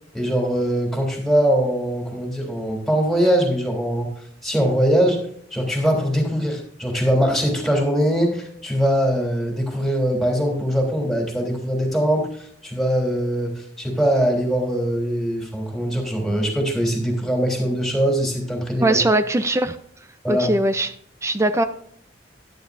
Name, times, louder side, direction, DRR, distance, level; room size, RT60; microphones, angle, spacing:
voice 1, 0.1-4.1 4.4-5.2 5.5-19.0 20.2-20.5, equal, ahead, 0 dB, 3.2 m, -22 dB
voice 2, 18.8-19.8 20.3-20.9 21.2-21.6, right 1 dB, 15° right, 10 dB, 0.5 m, -20 dB
12.0 x 11.0 x 2.6 m, 0.64 s
head